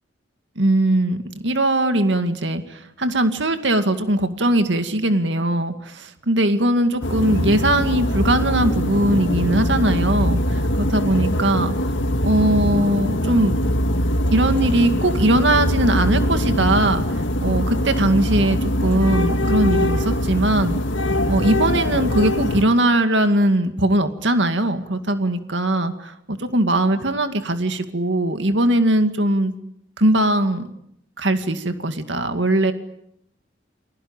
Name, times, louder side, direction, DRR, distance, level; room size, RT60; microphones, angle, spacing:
voice 1, 0.6-10.6 10.9-11.7 12.2-13.6 14.3-20.8 21.3-29.5 30.0-30.7 31.2-32.7, right 1 dB, 70° right, 8 dB, 2.2 m, -20 dB
sound 1, 7.0-22.6, left 1 dB, 85° left, 1.9 m, -22 dB
29.5 x 22.0 x 8.9 m, 0.74 s
head